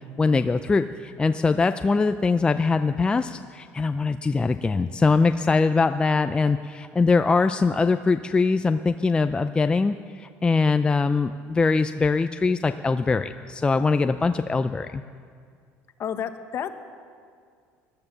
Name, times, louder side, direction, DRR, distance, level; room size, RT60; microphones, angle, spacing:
voice 1, 0.2-15.0, left 4 dB, 15° left, 9 dB, 0.4 m, -22 dB
voice 2, 16.0-16.7, left 8 dB, 45° left, 9 dB, 1.1 m, -30 dB
17.5 x 12.0 x 6.7 m, 2.1 s
cardioid pair, 120°, 6 cm